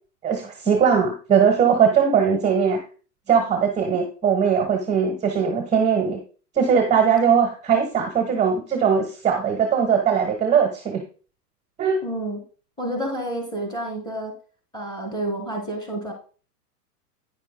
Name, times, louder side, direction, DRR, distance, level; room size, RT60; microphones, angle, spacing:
voice 1, 0.2-2.8 3.3-6.2 6.5-11.0 11.8-12.0, right 7 dB, 15° right, 4 dB, 1.1 m, -20 dB
voice 2, 12.0-12.4 12.8-14.3 14.7-16.1, right 1 dB, 10° left, 1 dB, 3.7 m, -29 dB
10.0 x 9.7 x 2.2 m, 0.38 s
hypercardioid pair, 135°, 47 cm